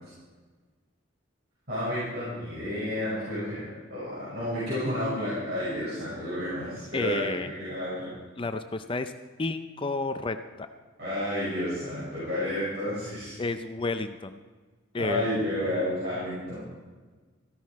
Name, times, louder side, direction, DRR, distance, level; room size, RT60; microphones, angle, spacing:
voice 1, 1.7-8.1 11.0-13.4 15.0-16.6, left 1 dB, 55° right, -9 dB, 5.7 m, -31 dB
voice 2, 6.9-7.5 8.4-9.1 9.4-10.7 13.4-14.4 14.9-15.3, left 3 dB, 25° left, 9 dB, 0.5 m, -31 dB
14.5 x 13.0 x 4.7 m, 1.4 s
head